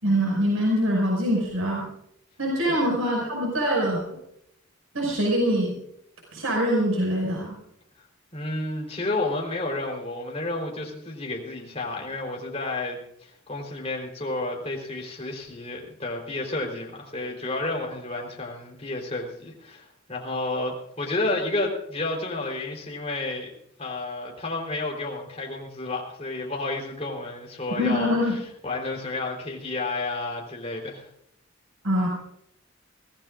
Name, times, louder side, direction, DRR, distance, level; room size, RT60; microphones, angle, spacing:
voice 1, 0.0-1.9 2.4-4.0 4.9-5.7 6.3-7.5 27.8-28.3 31.8-32.1, equal, 80° right, -2 dB, 5.8 m, -24 dB
voice 2, 8.3-23.5 23.8-31.1, left 2 dB, 30° left, 0 dB, 3.8 m, -31 dB
24.0 x 17.5 x 2.5 m, 0.74 s
head